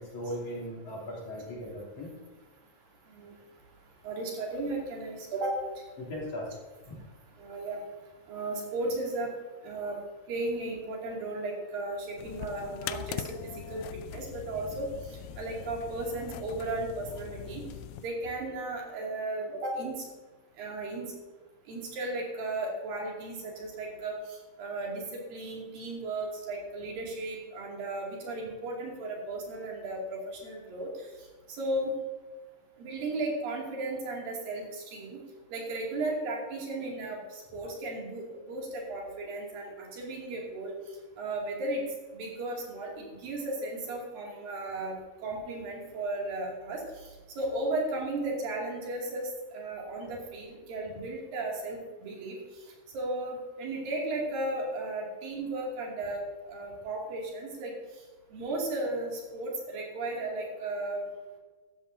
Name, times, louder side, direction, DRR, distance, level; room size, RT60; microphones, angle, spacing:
voice 1, 0.0-2.1 6.0-6.5 6.9-7.0 53.7-53.8, equal, 60° left, -4 dB, 4.3 m, -38 dB
voice 2, 4.0-5.6 7.4-7.8 8.3-9.3 9.6-10.0 10.3-13.8 14.1-17.6 18.0-20.0 20.6-21.1 21.7-30.9 31.5-31.9 32.8-35.2 35.5-40.7 41.2-41.8 42.1-47.1 47.4-52.4 52.9-56.2 56.5-57.7 58.3-61.0, right 2 dB, 80° right, -2 dB, 4.3 m, -35 dB
sound 1, 12.2-18.1, left 12 dB, 90° left, 2.3 m, -41 dB
15.0 x 12.5 x 2.8 m, 1.3 s
omnidirectional pair, 4.0 m